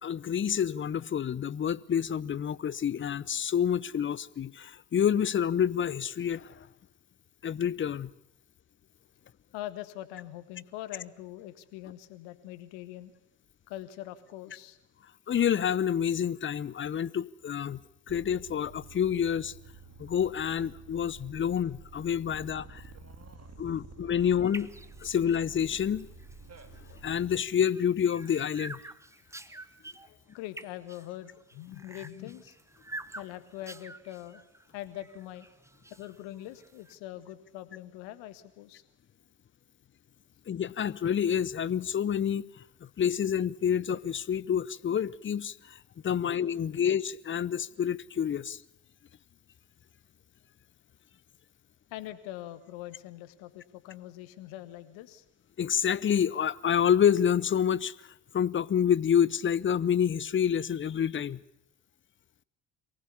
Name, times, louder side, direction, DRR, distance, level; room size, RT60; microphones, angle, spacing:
voice 1, 0.0-6.6 7.4-8.1 15.3-17.8 18.1-19.5 20.0-22.8 23.6-24.7 25.0-26.1 27.0-28.8 40.5-42.4 42.8-45.8 46.0-48.6 55.6-57.9 58.3-61.4, left 8 dB, 25° left, 0.7 m, -28 dB
voice 2, 9.5-13.1 13.7-14.8 23.2-23.6 30.0-32.6 33.2-34.4 34.7-35.5 35.9-38.8 46.7-46.8 51.9-55.2, left 14 dB, 65° left, 1.7 m, -43 dB
sound 1, 18.1-27.4, right 3 dB, 30° right, 2.2 m, -50 dB
sound 2, 24.4-36.9, right 2 dB, 5° right, 1.0 m, -48 dB
23.5 x 18.5 x 7.1 m
figure-of-eight pair, 55°, 50 cm